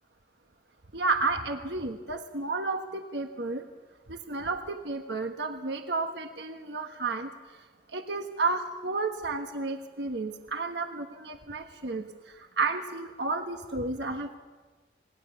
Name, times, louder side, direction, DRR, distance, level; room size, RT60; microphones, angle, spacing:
voice 1, 0.9-3.6 4.1-7.3 7.9-12.1 12.3-14.4, right 3 dB, 70° right, 5 dB, 1.4 m, -32 dB
27.0 x 20.0 x 7.0 m, 1.4 s
head